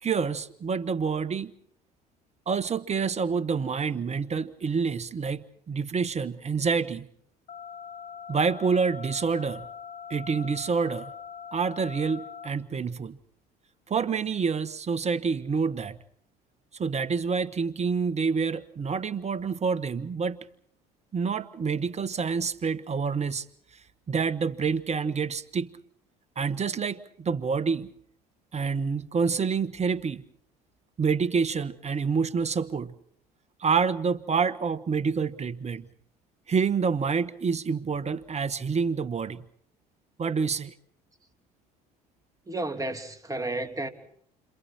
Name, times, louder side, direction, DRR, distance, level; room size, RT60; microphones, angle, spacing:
voice 1, 0.0-1.5 2.5-7.1 8.3-9.7 10.1-11.1 11.5-13.2 13.9-16.0 16.8-20.4 21.1-23.4 24.1-25.7 26.4-27.9 28.5-30.2 31.0-32.9 33.6-35.9 36.5-39.4 40.2-40.7, right 5 dB, 35° right, 1.5 m, -27 dB
sound 1, 7.5-12.5, left 7 dB, 50° left, 1.2 m, -42 dB
voice 2, 42.5-43.9, right 2 dB, 15° right, 2.9 m, -32 dB
29.5 x 27.0 x 4.5 m
hypercardioid pair, 65°, 20 cm